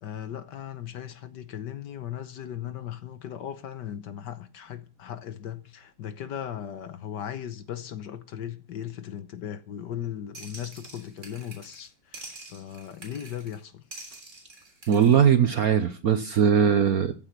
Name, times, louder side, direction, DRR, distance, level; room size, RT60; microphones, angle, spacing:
voice 1, 0.0-13.7, left 10 dB, 60° left, 1.4 m, -37 dB
sound 1, 10.3-11.9 12.1-13.6 13.9-15.2, right 2 dB, 35° right, 3.9 m, -46 dB
voice 2, 14.9-17.1, right 8 dB, 60° right, 1.0 m, -20 dB
14.5 x 8.5 x 5.8 m
omnidirectional pair, 2.3 m